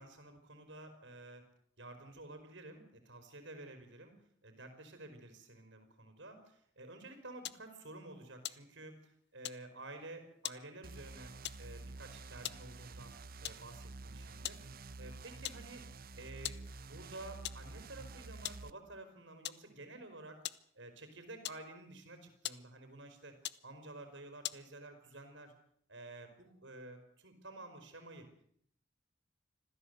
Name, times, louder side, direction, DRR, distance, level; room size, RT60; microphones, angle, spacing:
voice 1, 0.0-1.4 1.8-4.1 4.4-13.1 13.4-15.9 16.2-16.6 16.9-20.4 20.7-23.3 23.6-25.5 25.9-28.3, right 2 dB, 80° right, 6 dB, 4.7 m, -51 dB
sound 1, 7.4-7.7 8.3-9.1 9.4-9.7 10.4-10.7 11.4-11.7 12.3-12.7 13.4-13.7 14.4-14.7 15.0-15.1 15.4-15.8 16.4-16.7 17.4-17.7 18.4-18.7 19.4-19.7 20.4-20.7 21.4-21.9 22.4-22.7 23.4-23.7 24.4-24.7, left 13 dB, 65° left, 0.9 m, -43 dB
sound 2, 10.8-18.7, right 3 dB, 55° right, 0.9 m, -49 dB
26.0 x 15.5 x 8.1 m, 0.64 s
head